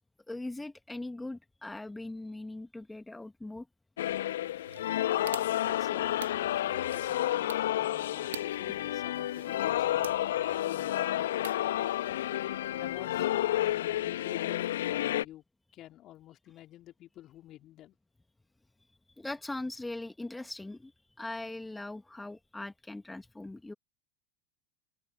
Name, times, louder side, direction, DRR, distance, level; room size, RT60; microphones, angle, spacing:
voice 1, 0.3-3.6 19.2-20.9 21.2-23.7, left 2 dB, 5° left, 1.5 m, -40 dB
sound 1, 4.0-15.2, left 13 dB, 65° left, 1.1 m, -30 dB
sound 2, 4.7-12.4, right 9 dB, 70° right, 2.0 m, -49 dB
voice 2, 5.7-10.1 10.7-11.3 11.6-11.9 12.8-15.4 15.7-18.0, left 14 dB, 40° left, 3.6 m, -50 dB
figure-of-eight pair, 80°, 0 cm